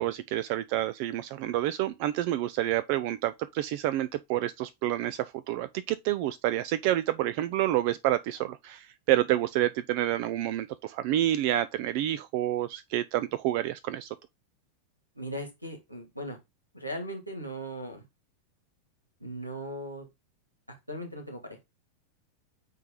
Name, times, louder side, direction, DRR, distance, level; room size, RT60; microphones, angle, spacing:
voice 1, 0.0-14.1, right 13 dB, 45° right, 0.5 m, -28 dB
voice 2, 15.1-16.4 16.7-18.0 19.2-20.1 20.9-21.6, equal, 90° right, 2.3 m, -38 dB
9.1 x 3.4 x 3.7 m
figure-of-eight pair, 90°, 0 cm